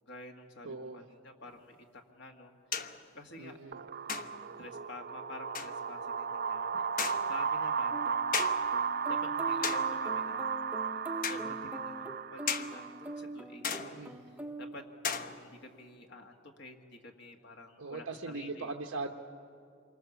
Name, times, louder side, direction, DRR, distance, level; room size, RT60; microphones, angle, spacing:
voice 1, 0.1-2.5 3.1-3.6 4.1-4.2 4.6-8.0 9.0-10.5 11.2-14.1 14.6-14.8 15.4-18.7, left 2 dB, 55° left, 3 dB, 1.7 m, -49 dB
voice 2, 0.6-1.1 3.4-3.8 13.8-14.2 17.8-19.1, right 3 dB, 85° right, 2 dB, 1.1 m, -40 dB
sound 1, 1.5-1.6 2.7-3.1 4.1-4.6 5.5-5.8 7.0-7.4 8.3-8.8 9.6-10.1 11.2-11.5 12.5-12.8 13.6-14.2 15.0-15.6, left 6 dB, 40° left, 0.9 m, -36 dB
sound 2, 3.7-13.2, right 6 dB, 45° right, 0.5 m, -34 dB
sound 3, 7.9-15.4, right 1 dB, 10° right, 0.8 m, -43 dB
27.5 x 24.5 x 7.1 m, 2.5 s
head